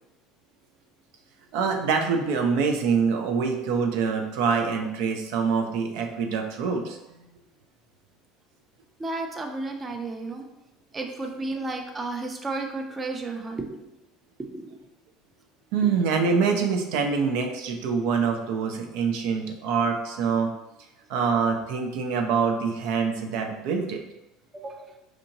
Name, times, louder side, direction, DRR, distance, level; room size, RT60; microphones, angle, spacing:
voice 1, 1.5-7.3 15.7-20.5 21.1-24.0, right 5 dB, 65° right, 3 dB, 0.5 m, -25 dB
voice 2, 9.0-10.4 10.9-13.9 14.4-14.8 24.5-24.9, right 2 dB, 25° right, 3 dB, 0.6 m, -33 dB
4.6 x 2.5 x 2.8 m, 0.95 s
hypercardioid pair, 70°, 0 cm